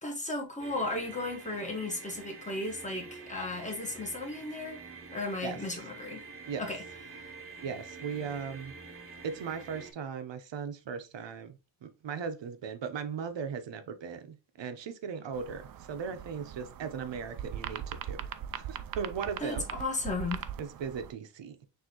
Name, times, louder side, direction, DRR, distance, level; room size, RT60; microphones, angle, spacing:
voice 1, 0.0-4.8 5.1-6.2 6.6-6.8 7.1-7.2 19.4-20.4, left 2 dB, 15° left, 1.4 m, -35 dB
sound 1, 0.6-9.9, right 4 dB, 30° right, 0.9 m, -47 dB
voice 2, 7.6-8.7 9.2-18.3 18.5-19.7 20.6-21.6, right 6 dB, 70° right, 0.9 m, -38 dB
sound 2, 15.3-21.1, right 9 dB, 50° right, 0.5 m, -41 dB
6.3 x 2.8 x 2.9 m
wide cardioid pair, 145°, 46 cm